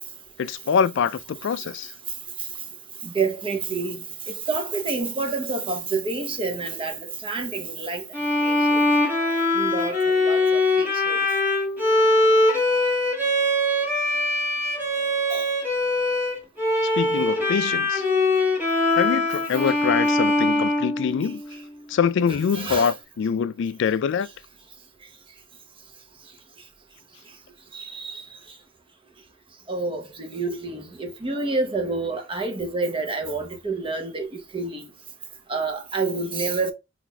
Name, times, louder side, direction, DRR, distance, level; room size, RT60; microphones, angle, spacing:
voice 1, 0.4-1.9 17.0-18.0 19.0-21.4 21.9-24.3, left 7 dB, 65° left, 0.3 m, -24 dB
voice 2, 3.0-8.1 8.4-8.8 9.5-11.2 15.3-15.5 20.0-20.1 21.2-21.3 22.3-22.9 27.7-28.2 29.7-34.9 35.5-36.7, right 3 dB, 25° right, 0.8 m, -28 dB
Bowed string instrument, 8.1-21.6, left 1 dB, 10° right, 1.4 m, -22 dB
5.7 x 2.5 x 2.2 m
head